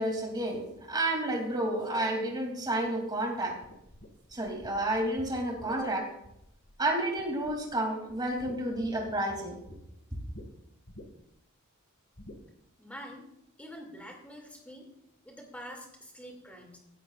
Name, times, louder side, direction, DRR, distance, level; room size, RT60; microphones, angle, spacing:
voice 1, 0.0-3.6 4.3-6.1 6.8-9.6, right 1 dB, 20° right, 0 dB, 2.8 m, -30 dB
sound 1, 3.6-6.9 7.2-7.8 8.1-9.8 10.3-10.5 10.9-11.4 12.2-12.4, left 1 dB, 50° left, 1.9 m, -50 dB
voice 2, 12.8-13.3 13.6-14.9 15.2-16.8, equal, 5° left, 1 dB, 2.6 m, -46 dB
16.5 x 12.5 x 2.5 m, 0.81 s
head